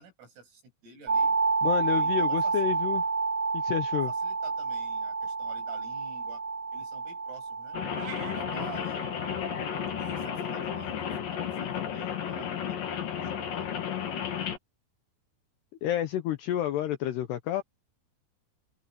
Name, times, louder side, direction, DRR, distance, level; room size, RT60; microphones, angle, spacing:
voice 1, 0.0-1.4 1.9-2.8 3.9-6.4 6.7-7.8 8.2-9.1 10.0-13.7, right 5 dB, 80° right, 10.5 m, -50 dB
sound 1, 1.1-10.8, right 4 dB, 30° right, 1.4 m, -30 dB
voice 2, 1.6-3.0 3.5-4.1 15.8-17.6, left 11 dB, 75° left, 2.5 m, -29 dB
Rain, 7.7-14.6, left 8 dB, 50° left, 3.5 m, -33 dB
sound 2, 7.9-8.4, right 8 dB, 50° right, 3.0 m, -42 dB
omnidirectional pair, 5.9 m